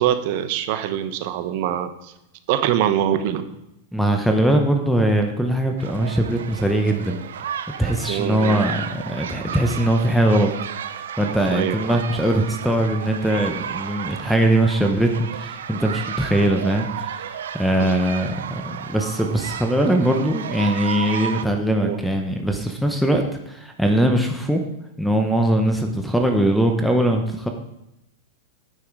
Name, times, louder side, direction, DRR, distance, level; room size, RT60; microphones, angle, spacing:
voice 1, 0.0-2.1 2.5-3.5 8.1-8.6 11.5-12.0 17.8-17.9 21.8-22.0, right 11 dB, 55° right, 10 dB, 0.9 m, -23 dB
voice 2, 3.9-7.2 7.8-10.5 10.8-24.6 25.0-27.5, right 1 dB, ahead, 4 dB, 0.8 m, -21 dB
sound 1, 5.8-21.4, right 9 dB, 85° right, 0.6 m, -33 dB
9.1 x 6.1 x 4.8 m, 0.87 s
hypercardioid pair, 130°, 0 cm